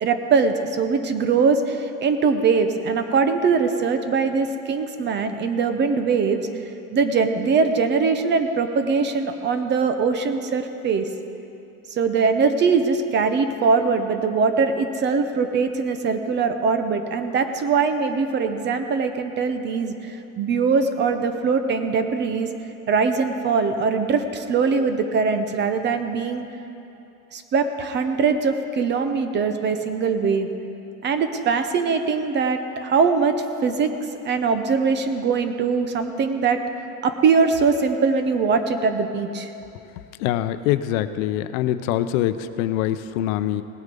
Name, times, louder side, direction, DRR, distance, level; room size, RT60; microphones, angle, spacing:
voice 1, 0.0-6.4 6.9-11.1 11.9-22.5 22.9-26.4 27.3-30.5 31.0-33.4 33.6-33.9 34.2-36.6 37.0-39.5, right 5 dB, 25° right, 8 dB, 0.6 m, -22 dB
voice 2, 40.2-43.6, left 12 dB, 70° left, 11 dB, 0.7 m, -24 dB
18.0 x 8.1 x 5.3 m, 2.9 s
supercardioid pair, 140°, 42 cm